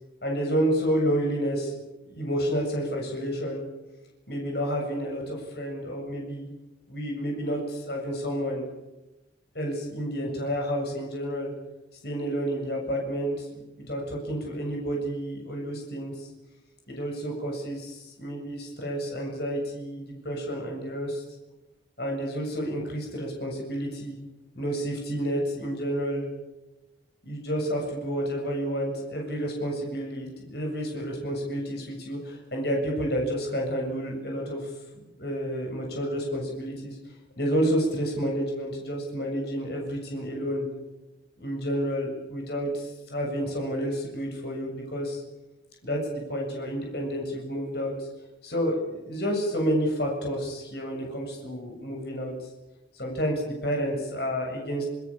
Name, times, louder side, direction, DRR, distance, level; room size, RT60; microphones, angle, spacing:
voice 1, 0.2-1.7 2.1-3.6 4.3-6.5 6.9-8.6 9.5-11.5 12.0-13.5 13.9-16.3 16.9-21.2 22.0-24.2 24.6-26.2 27.2-37.0 37.4-40.7 41.4-45.2 45.8-48.1 48.4-52.3 52.9-54.9, equal, 55° left, 0 dB, 7.3 m, -30 dB
25.5 x 23.0 x 7.4 m, 1.0 s
head